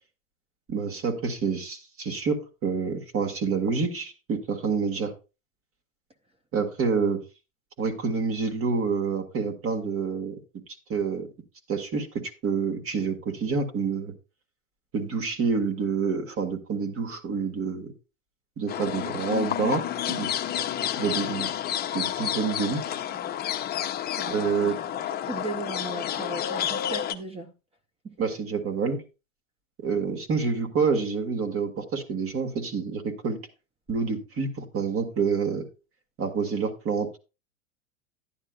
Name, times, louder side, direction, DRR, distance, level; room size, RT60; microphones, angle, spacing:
voice 1, 0.7-5.1 6.5-7.2 7.8-10.3 10.9-11.3 11.7-12.1 12.4-14.1 14.9-17.9 18.6-20.3 21.0-21.5 21.9-23.0 24.3-24.8 28.2-29.0 29.8-33.4 33.9-35.7 36.2-37.2, right 5 dB, 35° right, 1.8 m, -28 dB
sound 1, 18.7-27.1, left 10 dB, 25° left, 0.7 m, -30 dB
voice 2, 24.2-24.9 25.2-27.5 28.0-28.2, right 2 dB, 15° right, 0.7 m, -37 dB
11.0 x 9.7 x 2.4 m
hypercardioid pair, 110°, 38 cm